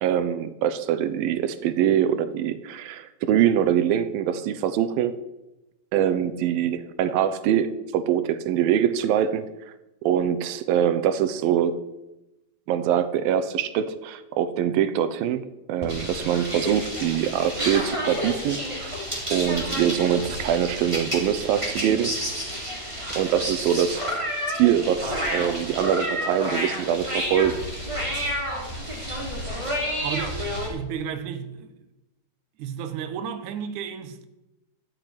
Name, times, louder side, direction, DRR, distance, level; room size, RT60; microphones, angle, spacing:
voice 1, 0.0-5.2 5.9-9.5 10.0-11.8 12.7-18.9 19.3-22.2 23.2-27.6, right 9 dB, 85° right, 2.6 m, -24 dB
sound 1, 15.8-30.7, equal, 10° right, 3.0 m, -30 dB
voice 2, 30.0-31.7 32.6-34.3, right 8 dB, 65° right, 2.3 m, -33 dB
14.0 x 7.5 x 9.5 m
omnidirectional pair, 4.0 m